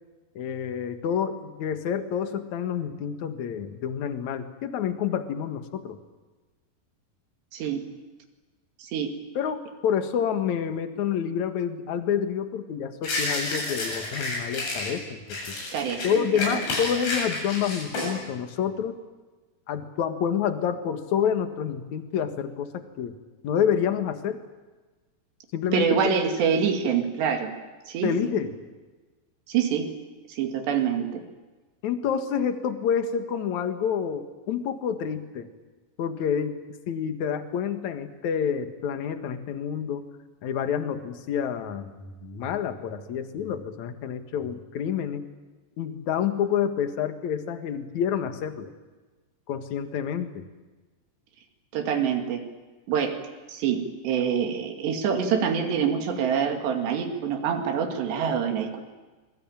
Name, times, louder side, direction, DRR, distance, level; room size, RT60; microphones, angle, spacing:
voice 1, 0.4-6.0 9.4-15.6 16.0-19.0 19.7-23.1 23.4-24.4 25.5-26.1 28.0-28.6 31.8-35.5 36.0-36.6 36.9-40.1 40.4-45.2 45.8-48.7 49.5-50.5, left 8 dB, 55° left, 8 dB, 2.5 m, -28 dB
voice 2, 7.5-7.8 8.8-9.1 15.7-16.3 16.5-16.6 25.7-27.5 27.9-28.3 29.5-29.9 30.3-31.2 51.7-52.4 52.9-53.2 53.5-58.8, right 7 dB, 75° right, 4 dB, 4.5 m, -26 dB
sound 1, 13.0-14.9 15.3-18.2, left 2 dB, 80° left, 10.0 m, -30 dB
26.0 x 22.5 x 9.0 m, 1.3 s
omnidirectional pair, 5.0 m